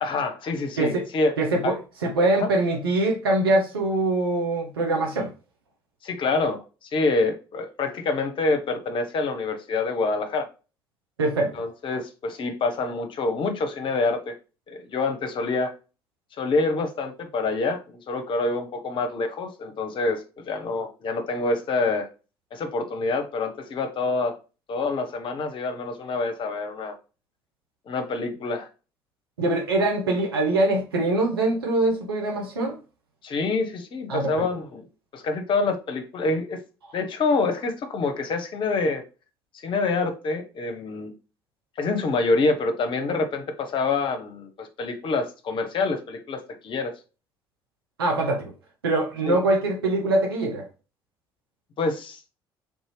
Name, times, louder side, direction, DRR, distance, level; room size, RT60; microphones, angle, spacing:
voice 1, 0.0-1.3 1.6-1.7 2.4-2.5 6.0-10.5 11.5-14.4 14.7-15.7 16.4-22.1 22.5-24.4 24.7-26.9 27.9-28.7 33.2-34.8 35.1-36.6 36.9-39.0 39.6-41.1 41.8-46.9 49.3-49.4 51.8-52.2, left 3 dB, 40° left, 0.7 m, -26 dB
voice 2, 1.4-1.7 2.0-5.3 11.2-11.5 29.4-32.8 34.1-34.3 48.0-48.5 48.8-50.6, right 2 dB, 80° right, 1.0 m, -23 dB
3.5 x 2.7 x 3.1 m
figure-of-eight pair, 50°, 12 cm